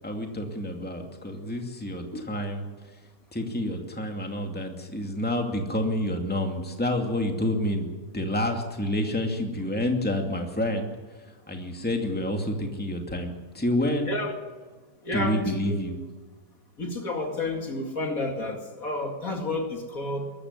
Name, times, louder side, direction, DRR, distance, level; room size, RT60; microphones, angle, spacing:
voice 1, 0.0-3.0 3.3-14.2 15.1-16.0, left 1 dB, 5° left, 3 dB, 2.4 m, -29 dB
voice 2, 15.0-15.8 16.8-20.3, left 2 dB, 55° left, 3 dB, 2.9 m, -30 dB
22.5 x 14.0 x 9.8 m, 1.4 s
omnidirectional pair, 1.8 m